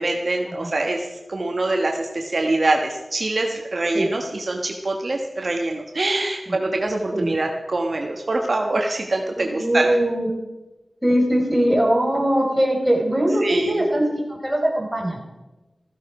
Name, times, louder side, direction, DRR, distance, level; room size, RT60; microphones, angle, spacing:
voice 1, 0.0-9.9 13.4-13.8, right 2 dB, 50° right, 2 dB, 1.3 m, -24 dB
voice 2, 9.4-10.3 11.0-15.2, right 1 dB, 10° right, -1 dB, 4.3 m, -21 dB
15.5 x 14.5 x 4.9 m, 1.1 s
wide cardioid pair, 95°, 0 cm